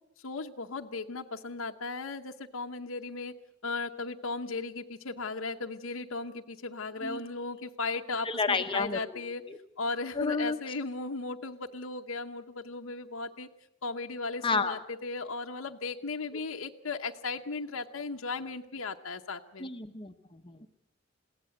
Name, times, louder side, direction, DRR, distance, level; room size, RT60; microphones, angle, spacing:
voice 1, 0.2-3.3 3.6-9.4 9.8-13.5 13.8-19.7, left 3 dB, 75° left, 3 dB, 0.9 m, -36 dB
voice 2, 8.2-9.0 9.5-9.6 10.2-10.6 14.4-14.8 19.6-20.7, left 4 dB, 25° left, 7 dB, 0.9 m, -30 dB
22.0 x 16.5 x 7.8 m, 0.83 s
head